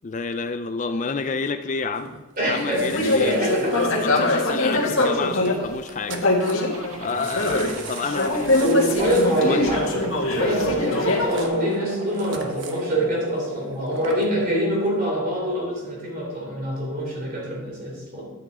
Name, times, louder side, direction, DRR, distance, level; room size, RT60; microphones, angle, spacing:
voice 1, 0.0-2.2 2.4-3.4 4.0-6.2 7.0-8.7 9.4-9.8, left 4 dB, 35° left, 9 dB, 0.4 m, -29 dB
sound 1, 1.9-4.7 5.0-5.1 5.4-5.5 5.8-6.8 7.1-12.9 13.7-14.4 14.9-15.0, right 4 dB, 60° right, 1.1 m, -41 dB
voice 2, 2.4-2.9 3.2-3.9 8.6-18.3, equal, 40° right, -2 dB, 3.7 m, -25 dB
sound 2, 2.7-5.7 6.1-7.8 8.0-11.5, left 2 dB, 80° left, 1.8 m, -23 dB
sound 3, 6.7-14.7, right 2 dB, 90° right, 1.7 m, -37 dB
11.0 x 8.6 x 4.2 m, 1.2 s
head